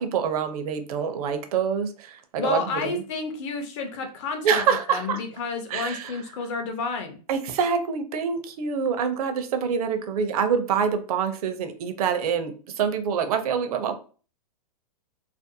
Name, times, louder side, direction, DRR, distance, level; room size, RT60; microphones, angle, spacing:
voice 1, 0.0-3.0 4.4-5.2 5.7-6.2 7.3-13.9, right 6 dB, 60° right, 8 dB, 0.6 m, -26 dB
voice 2, 2.4-4.6 4.9-7.2, left 4 dB, 45° left, 5 dB, 0.5 m, -30 dB
2.5 x 2.0 x 2.7 m, 0.38 s
hypercardioid pair, 145°, 21 cm